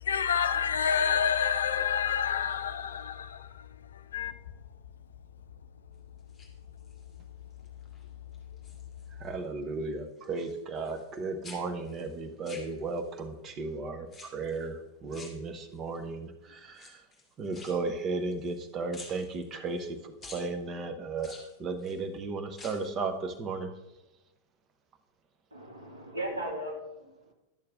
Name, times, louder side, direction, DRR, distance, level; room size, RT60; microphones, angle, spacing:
voice 1, 0.0-3.5 4.1-4.3, left 7 dB, 65° left, 0.5 m, -28 dB
sound 1, 6.2-7.2 7.6-8.0 8.3-9.4 9.6-11.2 11.4-13.2 14.1-14.7 15.1-16.0 16.7-18.6 18.9-19.9 20.2-20.5 21.2-22.0 22.5-23.0 23.3-23.4, left 3 dB, 10° left, 2.0 m, -50 dB
voice 2, 9.1-17.1 17.4-23.7, right 3 dB, 30° right, 0.9 m, -35 dB
voice 3, 25.5-27.3, right 1 dB, 80° right, 2.3 m, -37 dB
10.5 x 6.7 x 3.6 m
figure-of-eight pair, 90°, 0 cm